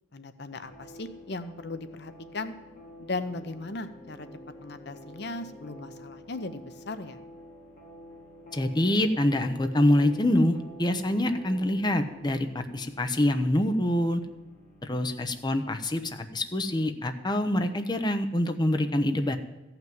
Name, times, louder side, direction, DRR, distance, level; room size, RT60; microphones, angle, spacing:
voice 1, 0.1-2.5 3.0-4.3 4.6-7.2, left 2 dB, 60° left, 10 dB, 0.8 m, -37 dB
sound 1, 0.6-17.4, equal, 40° left, 3.7 m, -49 dB
voice 2, 8.5-14.2 14.8-19.4, left 1 dB, 25° left, 7 dB, 0.8 m, -25 dB
15.0 x 5.9 x 9.2 m, 1.1 s
head